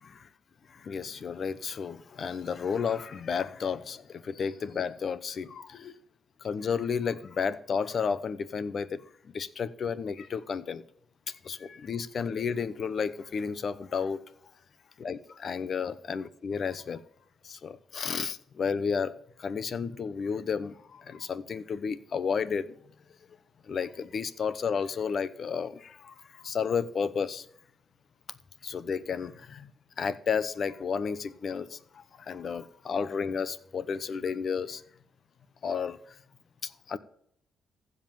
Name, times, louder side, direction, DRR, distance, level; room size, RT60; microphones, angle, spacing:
voice 1, 0.7-6.0 6.4-9.0 9.3-10.8 11.4-14.2 15.0-17.0 17.4-22.7 23.7-27.5 28.6-29.7 30.0-34.8 35.6-36.0 36.6-37.0, left 6 dB, 50° left, 0.8 m, -32 dB
15.5 x 5.4 x 7.1 m
cardioid pair, 90°, 0 cm